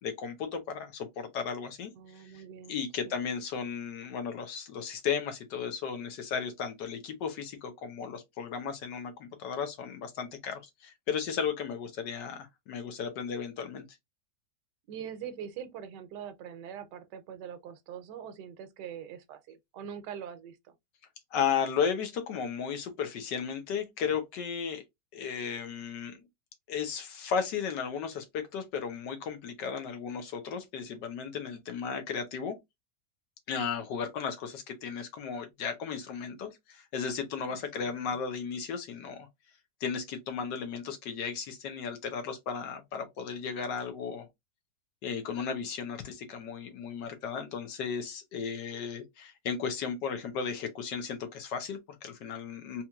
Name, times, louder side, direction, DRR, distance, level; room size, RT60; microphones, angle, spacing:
voice 1, 0.0-2.2 2.7-13.8 21.3-24.8 25.1-26.2 26.7-32.5 33.5-39.3 39.8-44.3 45.0-52.8, left 6 dB, 85° left, 1.5 m, -35 dB
voice 2, 2.0-3.1 14.9-20.7 37.5-38.2, right 8 dB, 85° right, 1.3 m, -43 dB
4.3 x 2.9 x 2.3 m
omnidirectional pair, 1.8 m